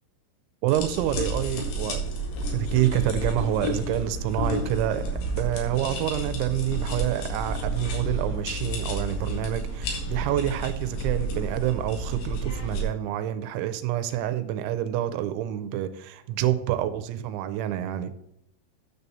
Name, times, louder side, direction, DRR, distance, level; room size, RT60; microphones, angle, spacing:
voice 1, 0.6-2.0 2.5-18.1, right 12 dB, 85° right, 10 dB, 2.9 m, -27 dB
sound 1, 0.7-12.8, right 1 dB, 85° left, 4.3 m, -31 dB
9.5 x 6.9 x 4.1 m, 0.79 s
omnidirectional pair, 5.4 m